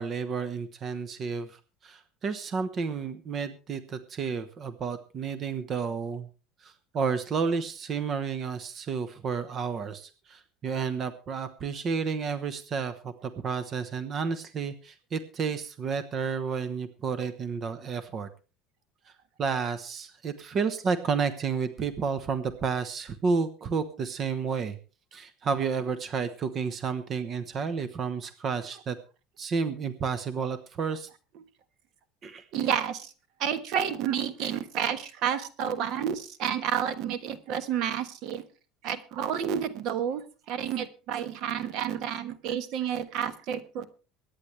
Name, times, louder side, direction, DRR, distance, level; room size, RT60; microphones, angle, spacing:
voice 1, 0.0-6.3 6.6-18.3 19.4-24.8 25.1-29.0 29.4-31.1 32.2-32.4, right 5 dB, 35° right, 12 dB, 1.1 m, -31 dB
voice 2, 32.5-33.1 33.4-38.4 38.8-43.9, right 9 dB, 60° right, 12 dB, 1.3 m, -30 dB
23.5 x 9.7 x 3.3 m, 0.34 s
cardioid pair, 135°, 0 cm